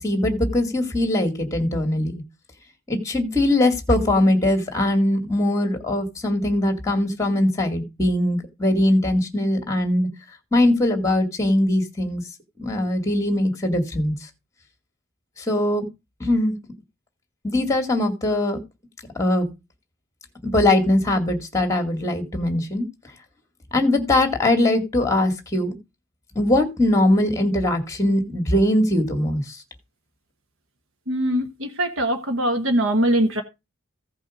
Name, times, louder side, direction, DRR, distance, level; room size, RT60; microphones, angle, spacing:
voice 1, 0.0-2.1 2.9-10.1 10.5-12.2 12.6-14.1 15.4-15.9 16.2-16.6 17.4-18.6 19.2-19.5 20.4-22.9 23.7-25.8 26.4-29.6, left 1 dB, 15° left, 2.1 m, -21 dB
voice 2, 31.1-31.4 31.8-33.4, right 1 dB, 65° right, 1.2 m, -21 dB
15.5 x 5.5 x 5.1 m
head